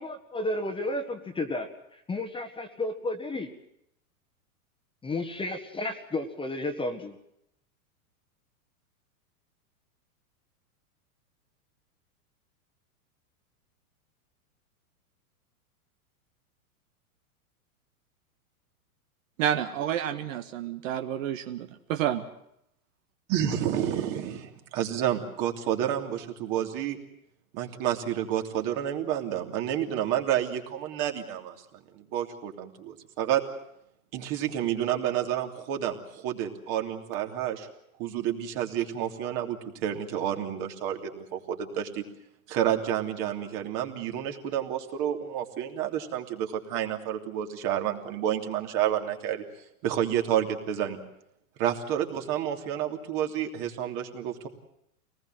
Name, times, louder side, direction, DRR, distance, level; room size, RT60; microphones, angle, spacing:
voice 1, 0.0-3.5 5.0-7.2, left 2 dB, 10° left, 7 dB, 1.5 m, -32 dB
voice 2, 19.4-22.3, right 10 dB, 60° right, 7 dB, 1.7 m, -29 dB
voice 3, 23.3-27.0 27.5-31.5 31.9-33.4 34.1-37.7 38.0-42.0 42.5-49.4 49.8-51.0 51.6-54.5, right 10 dB, 45° right, 4 dB, 3.1 m, -30 dB
24.5 x 19.5 x 7.8 m, 0.77 s
hypercardioid pair, 130°, 44 cm